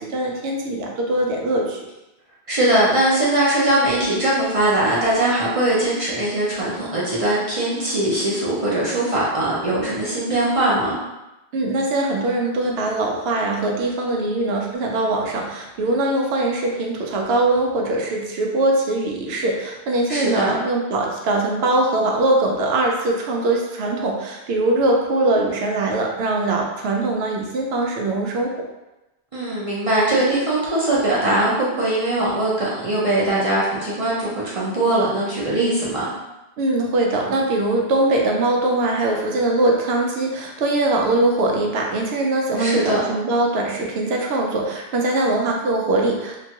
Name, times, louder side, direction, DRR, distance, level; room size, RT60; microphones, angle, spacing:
voice 1, 0.0-1.8 11.5-28.5 36.6-46.4, right 2 dB, 75° right, 0 dB, 0.8 m, -21 dB
voice 2, 2.5-10.9 20.1-20.5 29.3-36.1 42.5-43.0, right 1 dB, 40° right, -7 dB, 0.6 m, -21 dB
2.9 x 2.3 x 2.8 m, 0.98 s
omnidirectional pair, 1.1 m